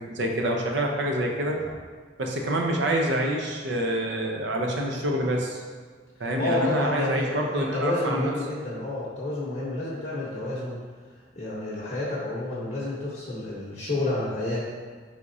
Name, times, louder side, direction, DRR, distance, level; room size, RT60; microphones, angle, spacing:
voice 1, 0.0-1.7 2.2-5.6 6.2-8.3, right 1 dB, 65° right, 1 dB, 0.6 m, -27 dB
voice 2, 6.4-10.8 11.3-14.7, left 2 dB, 40° left, -7 dB, 0.8 m, -29 dB
4.7 x 3.5 x 2.6 m, 1.5 s
head